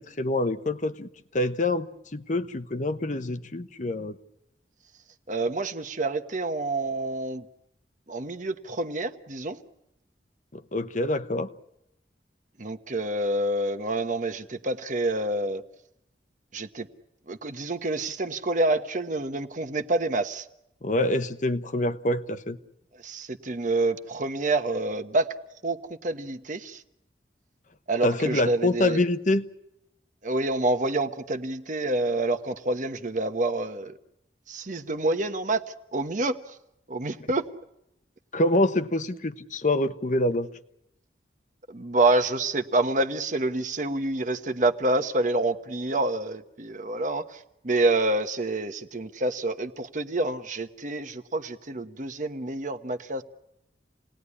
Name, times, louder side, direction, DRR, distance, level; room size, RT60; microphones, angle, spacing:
voice 1, 0.0-4.2 10.5-11.5 20.8-22.6 28.0-29.4 38.3-40.5, left 2 dB, 45° left, 1.0 m, -26 dB
voice 2, 5.3-7.5 8.1-9.6 12.6-15.6 16.5-16.9 17.3-20.5 23.0-25.3 25.6-26.8 27.9-29.0 30.2-34.0 34.5-36.6 36.9-37.4 41.7-53.2, right 2 dB, 45° right, 1.2 m, -27 dB
28.5 x 19.0 x 9.8 m
head